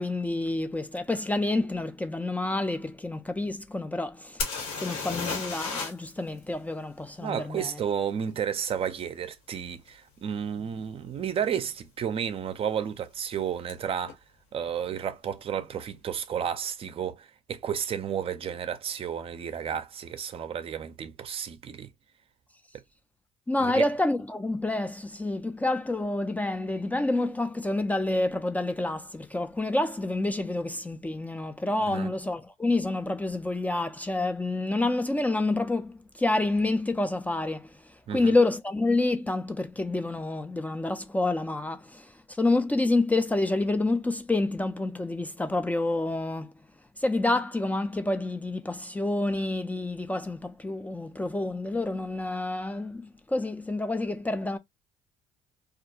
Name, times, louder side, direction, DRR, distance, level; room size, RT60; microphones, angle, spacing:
voice 1, 0.0-4.4 4.8-7.7 23.5-37.7 38.1-42.1 42.4-46.5 47.0-54.6, left 2 dB, 10° left, 0.4 m, -28 dB
sound 1, 4.4-6.1 6.4-6.5 9.9-10.0 10.6-10.8 11.1-11.7 13.7-13.8 14.1-14.2, left 4 dB, 80° left, 1.3 m, -33 dB
voice 2, 7.2-14.2 14.5-21.9 23.6-23.8 31.9-32.1 38.1-38.4, right 8 dB, 45° right, 0.5 m, -32 dB
2.4 x 2.2 x 2.7 m
supercardioid pair, 80°, 14 cm